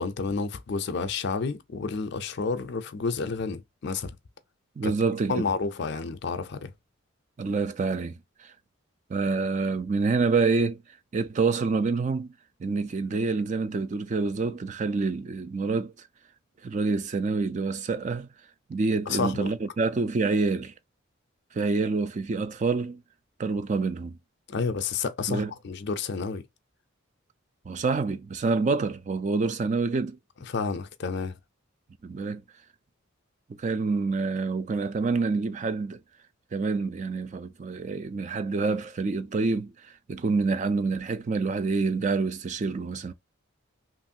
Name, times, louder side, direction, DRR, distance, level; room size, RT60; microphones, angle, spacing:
voice 1, 0.0-4.1 4.8-4.9 5.3-6.7 19.1-19.5 24.5-26.4 30.4-31.3, left 4 dB, 50° left, 0.4 m, -30 dB
voice 2, 4.8-5.5 7.4-8.5 9.1-10.8 11.1-12.3 12.6-15.9 16.6-18.3 18.7-20.7 21.5-23.0 23.4-24.2 25.3-25.5 27.7-30.2 32.0-32.4 33.6-36.0 36.5-43.1, right 4 dB, 35° right, 0.3 m, -27 dB
3.0 x 2.5 x 2.6 m
head